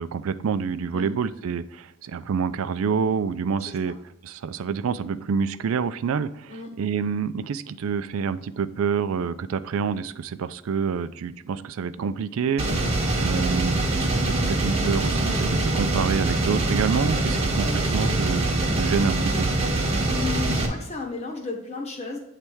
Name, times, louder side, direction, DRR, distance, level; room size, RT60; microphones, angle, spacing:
voice 1, 0.0-3.9 4.2-12.7 13.2-18.5 18.8-19.5, right 6 dB, 85° right, 14 dB, 0.4 m, -27 dB
voice 2, 3.6-3.9 6.5-6.7 20.1-22.2, left 4 dB, 30° left, 0 dB, 1.2 m, -34 dB
sound 1, 12.6-20.7, right 2 dB, 30° right, 1.0 m, -24 dB
8.4 x 3.3 x 4.5 m, 0.87 s
head